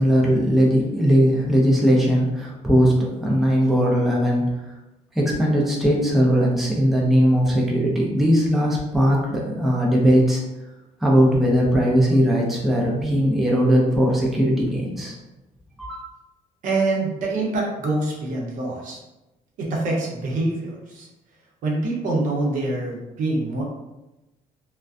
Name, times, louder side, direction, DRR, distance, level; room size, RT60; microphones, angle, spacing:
voice 1, 0.0-4.6 5.1-10.4 11.0-15.2 15.8-16.1, equal, ahead, -3 dB, 0.4 m, -19 dB
voice 2, 16.6-19.0 19.6-21.1 21.6-23.6, right 2 dB, 70° right, -2 dB, 0.7 m, -25 dB
2.3 x 2.1 x 2.4 m, 0.99 s
cardioid pair, 135°, 14 cm